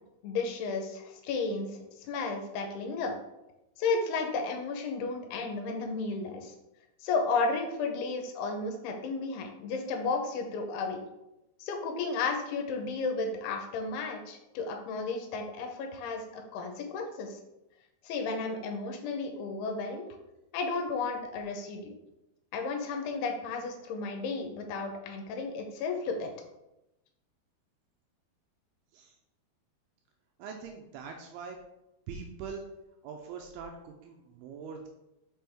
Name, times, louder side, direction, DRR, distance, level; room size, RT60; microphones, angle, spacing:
voice 1, 0.2-3.1 3.8-6.5 7.0-11.0 11.6-17.4 18.0-20.1 20.5-21.9 22.5-26.3, left 4 dB, 85° left, 4 dB, 2.7 m, -33 dB
voice 2, 30.4-31.6 32.1-32.6 33.0-34.9, right 5 dB, 80° right, 2 dB, 2.5 m, -42 dB
6.1 x 5.2 x 3.4 m, 0.92 s
omnidirectional pair, 4.6 m